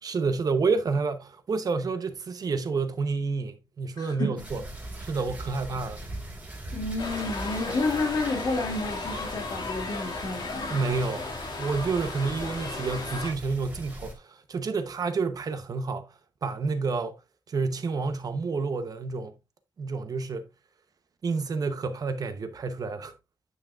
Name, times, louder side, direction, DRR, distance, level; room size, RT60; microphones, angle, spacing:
voice 1, 0.0-4.6 5.0-6.0 10.7-16.1 16.4-17.2 17.5-19.3 19.8-20.5 21.2-23.1, right 4 dB, 55° right, 0.8 m, -29 dB
voice 2, 4.0-4.5 6.7-10.8, left 3 dB, 65° left, 2.4 m, -30 dB
sound 1, 4.4-14.1, right 1 dB, 20° right, 1.9 m, -41 dB
sound 2, 7.0-13.3, left 3 dB, 85° left, 2.3 m, -35 dB
9.2 x 6.1 x 2.4 m
wide cardioid pair, 175°, 8 cm